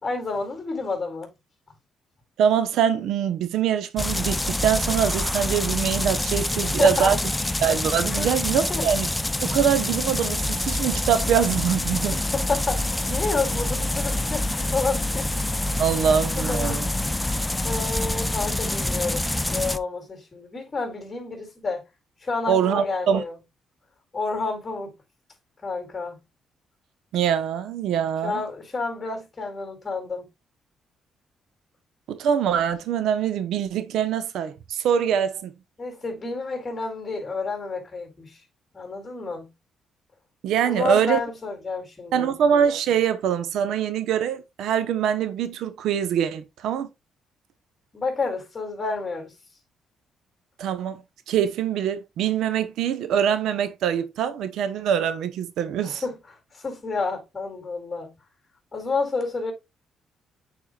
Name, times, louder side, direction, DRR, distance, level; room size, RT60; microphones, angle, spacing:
voice 1, 0.0-1.3 6.5-7.2 8.2-8.4 8.7-8.9 12.1-15.3 16.0-16.8 17.6-21.8 22.2-23.4 24.1-24.9 25.6-26.2 28.2-30.3 35.8-38.4 38.7-39.5 40.6-42.3 47.9-49.3 55.8-56.2 56.5-58.1 58.7-59.5, left 3 dB, 25° left, 4.1 m, -30 dB
voice 2, 2.4-7.2 7.6-9.1 9.4-12.1 15.8-16.9 22.5-23.2 27.1-28.4 32.1-35.5 40.4-41.2 42.1-46.9 50.6-51.0 51.3-56.0, right 8 dB, 80° right, 0.9 m, -23 dB
sound 1, 4.0-19.8, left 1 dB, 10° left, 0.6 m, -26 dB
8.9 x 4.9 x 2.4 m
cardioid pair, 90°, 0 cm